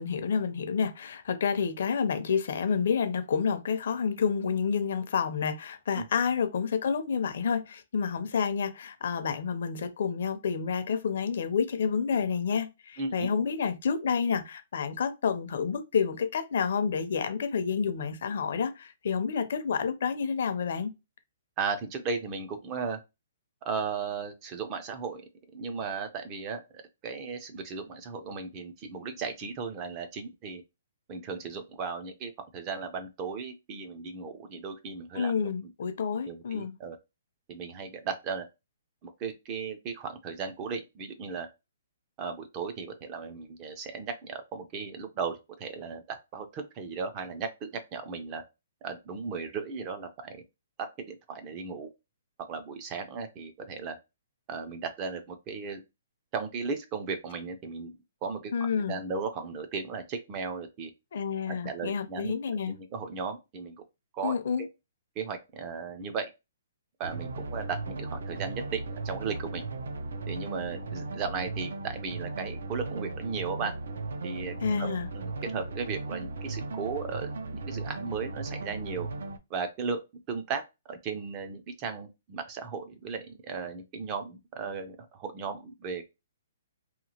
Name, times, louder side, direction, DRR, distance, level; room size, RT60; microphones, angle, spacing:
voice 1, 0.0-20.9 35.1-36.8 58.5-59.0 61.1-62.8 64.2-64.6 74.6-75.1, left 6 dB, 55° left, 0.5 m, -29 dB
voice 2, 13.0-13.3 21.6-23.0 23.6-25.2 25.5-30.6 31.1-35.3 36.2-37.0 37.5-38.5 39.0-41.5 42.2-48.4 48.8-50.4 50.8-51.9 52.5-54.0 54.5-55.8 56.3-58.5 58.9-60.9 61.5-62.3 62.7-63.8 64.1-64.7 65.2-66.3 67.0-69.7 70.3-73.7 74.2-74.9 75.1-79.1 79.5-80.0 80.3-80.6 80.9-86.0, right 5 dB, 20° right, 0.4 m, -36 dB
sound 1, 67.0-79.4, right 3 dB, 80° right, 0.4 m, -37 dB
2.8 x 2.4 x 2.8 m
hypercardioid pair, 170°, 0 cm